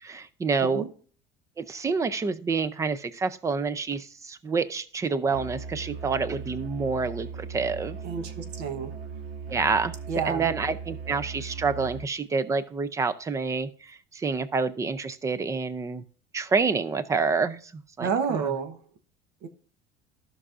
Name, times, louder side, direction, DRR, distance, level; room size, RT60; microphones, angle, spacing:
voice 1, 0.0-0.8 1.6-8.0 9.5-16.0 16.3-18.5, right 4 dB, 15° right, 15 dB, 0.5 m, -28 dB
Musical instrument, 5.3-12.2, right 5 dB, 90° right, 1.4 m, -38 dB
voice 2, 8.0-8.9 10.1-10.5 18.0-18.8 19.4-19.5, right 6 dB, 65° right, 9 dB, 1.1 m, -30 dB
14.0 x 6.1 x 2.5 m, 0.44 s
cardioid pair, 155°, 19 cm